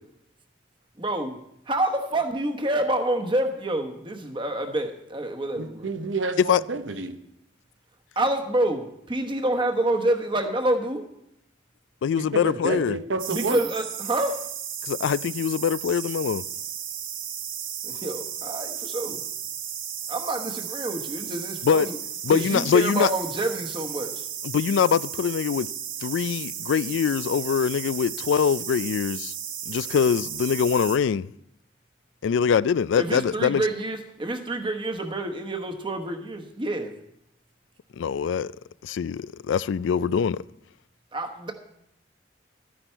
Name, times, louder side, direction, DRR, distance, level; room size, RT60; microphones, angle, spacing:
voice 1, 1.0-1.4 1.7-5.9 8.2-11.0 13.3-14.4 17.8-19.2 20.1-22.0 22.3-24.2 32.9-36.9 41.1-41.5, right 1 dB, 25° right, 1.1 m, -27 dB
voice 2, 5.6-7.2 12.1-13.6, right 3 dB, 80° right, 0.9 m, -29 dB
voice 3, 12.0-13.0 14.8-16.4 21.6-21.9 22.2-23.1 24.4-25.7 26.0-29.3 29.7-31.3 32.2-33.6 38.0-38.5 38.8-40.4, left 7 dB, 75° left, 0.3 m, -23 dB
sound 1, 13.2-31.0, right 9 dB, 45° right, 1.1 m, -34 dB
13.5 x 10.0 x 4.5 m
head